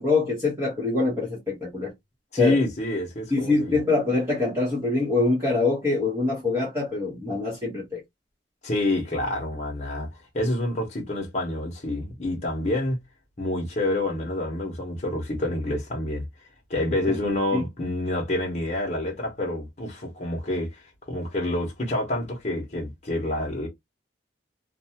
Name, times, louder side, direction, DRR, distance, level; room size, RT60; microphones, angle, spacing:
voice 1, 0.0-1.9 2.4-2.6 3.3-8.0 17.1-17.2 17.5-17.6, left 3 dB, 15° right, 1.0 m, -24 dB
voice 2, 2.3-3.8 8.6-10.1 10.3-13.0 13.4-16.2 16.7-20.8 21.1-23.7, left 1 dB, 35° left, 1.0 m, -27 dB
2.6 x 2.3 x 2.8 m
head